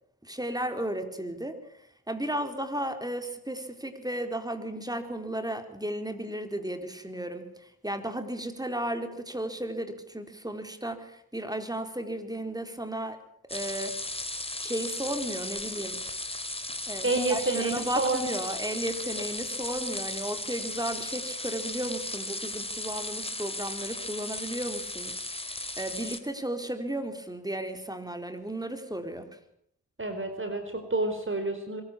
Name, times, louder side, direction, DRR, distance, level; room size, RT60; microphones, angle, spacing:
voice 1, 0.2-1.6 2.1-13.2 13.5-14.0 14.6-16.0 16.9-29.4, right 1 dB, 10° right, 7 dB, 4.2 m, -34 dB
sound 1, 13.5-26.2, left 1 dB, 15° left, 3.1 m, -36 dB
voice 2, 17.0-18.2 30.0-31.8, right 2 dB, 30° right, 7 dB, 4.5 m, -29 dB
23.0 x 14.5 x 8.7 m, 0.71 s
supercardioid pair, 40°, 38 cm